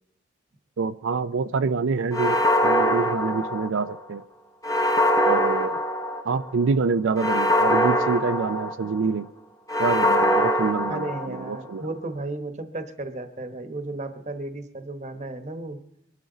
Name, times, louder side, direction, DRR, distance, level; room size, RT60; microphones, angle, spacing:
voice 1, 0.8-4.2 5.3-5.8 6.3-9.3 9.8-11.9, right 4 dB, 85° right, 10 dB, 0.4 m, -26 dB
sound 1, 2.1-4.0 4.6-6.5 7.2-9.0 9.7-11.6, equal, 20° left, 0.9 m, -23 dB
voice 2, 10.9-15.8, right 2 dB, 35° right, 8 dB, 1.1 m, -34 dB
23.5 x 11.5 x 3.9 m, 0.72 s
head